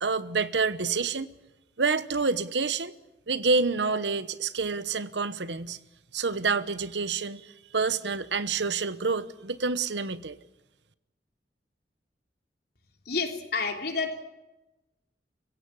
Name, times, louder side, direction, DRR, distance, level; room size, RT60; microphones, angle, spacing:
voice 1, 0.0-1.3 1.8-2.9 3.3-5.8 6.1-10.4, right 4 dB, 80° right, 14 dB, 1.1 m, -28 dB
voice 2, 13.0-14.2, left 4 dB, 60° left, 4 dB, 3.4 m, -29 dB
24.5 x 16.0 x 9.9 m, 1.0 s
head